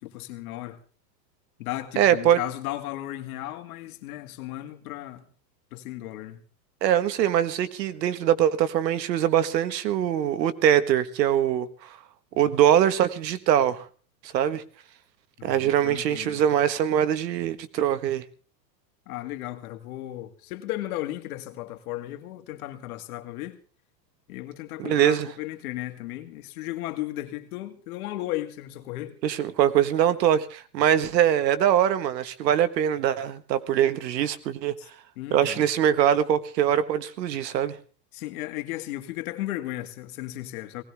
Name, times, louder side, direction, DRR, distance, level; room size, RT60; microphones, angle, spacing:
voice 1, 0.0-0.8 1.6-5.2 5.7-6.4 15.4-16.4 19.1-23.6 24.3-29.1 34.8-34.9 35.2-35.6 38.1-40.8, left 15 dB, 60° left, 2.3 m, -35 dB
voice 2, 2.0-2.4 6.8-11.7 12.4-13.8 14.2-14.6 15.4-18.2 24.8-25.3 29.2-34.7 35.3-37.7, right 10 dB, 80° right, 1.7 m, -22 dB
19.0 x 18.0 x 3.5 m
supercardioid pair, 145°, 50 cm